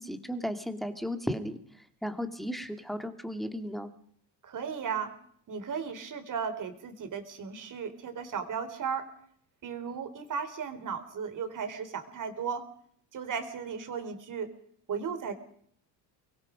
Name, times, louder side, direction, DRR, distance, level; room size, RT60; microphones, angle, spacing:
voice 1, 0.0-1.6 2.0-3.9, equal, ahead, 8 dB, 2.4 m, -35 dB
voice 2, 4.4-5.1 5.5-9.1 9.6-12.6 13.1-14.5 14.9-15.3, right 6 dB, 40° right, 8 dB, 4.1 m, -35 dB
25.0 x 22.0 x 5.3 m, 0.62 s
cardioid pair, 135°, 47 cm